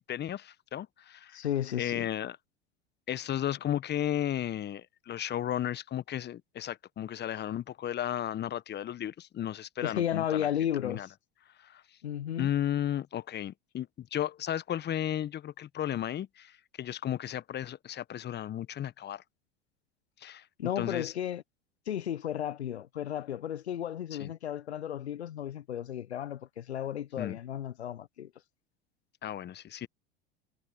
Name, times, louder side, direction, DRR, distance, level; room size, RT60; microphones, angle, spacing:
voice 1, 0.0-1.4 1.8-2.4 3.1-10.5 10.8-11.1 11.6-11.8 12.4-19.2 20.2-20.5 20.8-21.1 24.2-24.3 27.2-27.4 29.2-29.9, left 11 dB, 30° left, 1.3 m, -34 dB
voice 2, 1.3-2.1 9.8-11.1 12.0-12.5 20.6-21.4 21.9-28.3, left 10 dB, 85° left, 0.9 m, -33 dB
hypercardioid pair, 80°, 32 cm